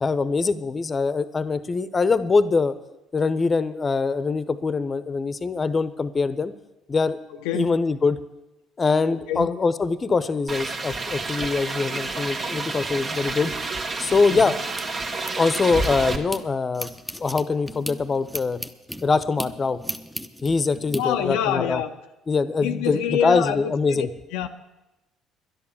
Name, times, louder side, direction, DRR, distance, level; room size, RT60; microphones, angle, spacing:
voice 1, 0.0-2.8 3.1-6.5 6.9-7.2 7.5-8.2 8.8-13.5 14.0-14.6 15.3-18.6 19.0-19.8 20.4-21.8 22.3-24.1, left 4 dB, 30° left, 14 dB, 0.9 m, -23 dB
voice 2, 7.3-7.8 9.1-9.6 14.3-14.5 21.0-21.9 22.6-24.5, left 9 dB, 75° left, 5 dB, 0.6 m, -27 dB
sound 1, 10.5-16.2, right 3 dB, 40° right, 1.6 m, -29 dB
sound 2, 14.6-16.4 16.7-21.0, equal, 5° right, 1.0 m, -36 dB
11.0 x 11.0 x 7.2 m, 0.97 s
hypercardioid pair, 60°, 0 cm